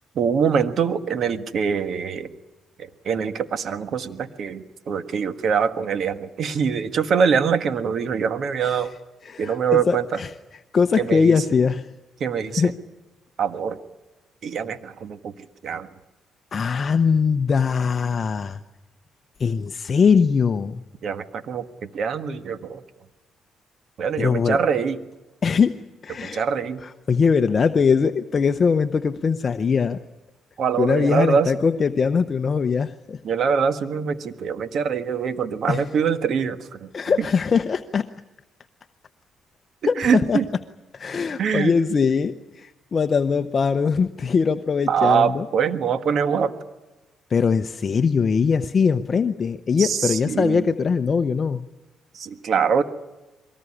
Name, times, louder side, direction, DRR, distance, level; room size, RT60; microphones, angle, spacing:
voice 1, 0.1-2.3 2.8-8.9 9.4-10.0 11.0-11.4 12.2-12.7 13.4-13.8 14.4-15.3 15.6-15.9 21.0-22.8 24.0-25.0 26.2-26.8 30.6-31.5 33.2-36.9 40.0-40.5 41.4-41.7 44.9-46.5 49.8-50.6 52.1-52.8, right 6 dB, 60° right, 10 dB, 1.5 m, -23 dB
voice 2, 9.2-10.3 10.7-11.9 12.6-12.7 16.5-18.6 19.4-20.8 24.2-24.6 25.4-25.8 26.0-26.4 26.8-30.0 30.8-33.2 35.7-35.9 36.9-38.1 39.9-40.4 40.9-45.5 47.3-51.6, left 5 dB, 40° left, 9 dB, 0.8 m, -21 dB
23.0 x 19.0 x 9.9 m, 1.1 s
cardioid pair, 90°, 0 cm